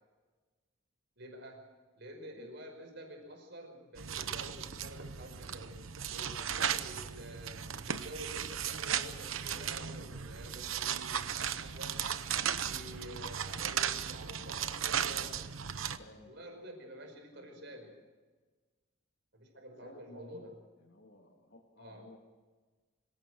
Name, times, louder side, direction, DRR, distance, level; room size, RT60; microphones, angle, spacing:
voice 1, 1.2-12.2 12.7-15.5 16.3-18.0 19.3-20.6 21.8-22.1, equal, 55° right, 4 dB, 5.2 m, -49 dB
sound 1, 4.0-16.0, right 8 dB, 75° right, 0.9 m, -36 dB
voice 2, 15.8-16.4 17.3-17.9 19.8-22.2, left 1 dB, 55° left, -1 dB, 2.5 m, -56 dB
26.5 x 17.5 x 6.3 m, 1.4 s
head